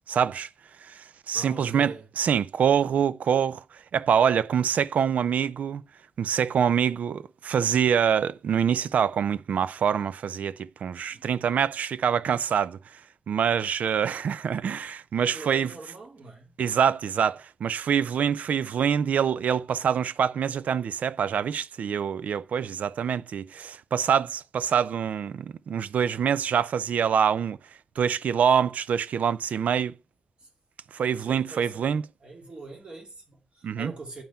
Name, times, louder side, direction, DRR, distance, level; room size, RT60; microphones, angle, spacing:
voice 1, 0.1-0.5 0.8-3.6 3.9-5.8 6.2-13.0 13.3-15.7 16.6-27.6 28.0-29.9 30.9-32.0 33.6-33.9, right 8 dB, 90° right, 0.5 m, -25 dB
voice 2, 1.3-2.1 11.1-11.3 15.3-16.5 30.4-30.5 31.2-34.2, right 2 dB, 40° right, 2.7 m, -43 dB
8.9 x 5.7 x 5.6 m
wide cardioid pair, 165°, 3 cm